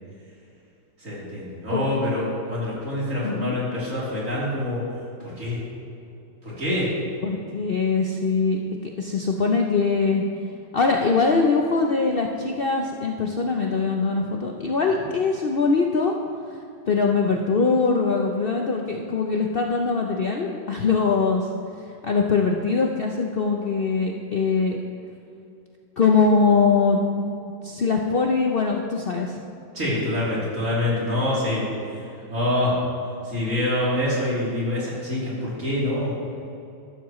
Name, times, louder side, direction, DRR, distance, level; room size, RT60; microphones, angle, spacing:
voice 1, 1.0-4.8 5.2-5.6 6.4-6.9 29.7-32.0 32.3-32.8 33.2-36.2, left 1 dB, 45° right, -7 dB, 3.6 m, -26 dB
voice 2, 3.2-3.6 7.2-8.6 9.0-10.2 10.7-16.1 16.9-21.5 22.0-24.8 26.0-27.0 27.6-29.4, left 4 dB, 85° left, 1 dB, 0.5 m, -22 dB
14.0 x 12.0 x 3.1 m, 2.7 s
omnidirectional pair, 2.0 m